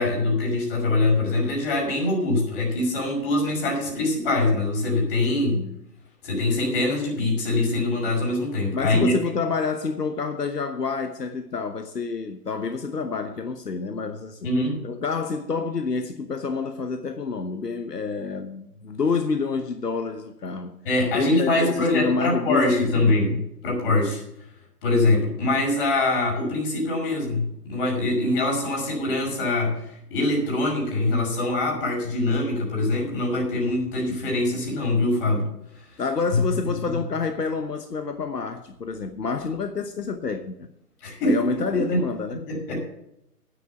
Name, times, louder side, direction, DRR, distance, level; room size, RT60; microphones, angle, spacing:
voice 1, 0.0-5.6 6.2-9.2 14.4-14.8 20.8-24.2 24.8-35.5 36.3-36.4 41.0-41.4 41.7-42.0 42.3-42.9, left 2 dB, 35° left, 5.7 m, -23 dB
voice 2, 5.3-5.8 8.7-14.5 14.8-20.7 21.1-23.2 36.0-40.6 41.2-42.4, left 4 dB, 85° left, 1.1 m, -28 dB
9.8 x 9.7 x 5.9 m
figure-of-eight pair, 140°, 47 cm